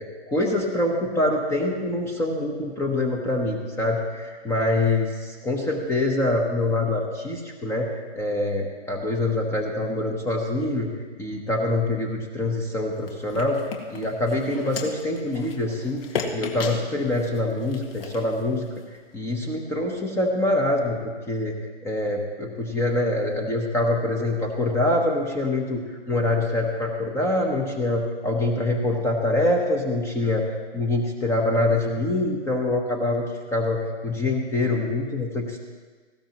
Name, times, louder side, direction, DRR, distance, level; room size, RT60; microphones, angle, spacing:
voice 1, 0.0-7.9 8.1-10.9 11.2-13.6 13.9-16.0 16.3-18.7 19.1-21.0 21.3-21.5 21.8-30.5 30.7-33.2 33.5-35.6, left 2 dB, 10° left, 1 dB, 1.0 m, -25 dB
sound 1, 12.9-19.0, left 5 dB, 55° left, 2.1 m, -36 dB
19.0 x 16.5 x 3.0 m, 1.4 s
hypercardioid pair, 145°, 34 cm